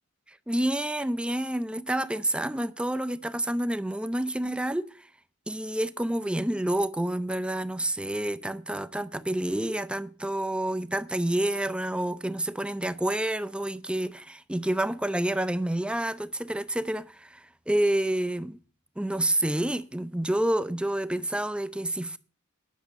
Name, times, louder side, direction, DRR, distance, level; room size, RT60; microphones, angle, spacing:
voice 1, 0.3-5.1 5.5-18.6 19.0-22.2, right 1 dB, 5° right, 0.5 m, -29 dB
10.5 x 6.3 x 7.9 m
head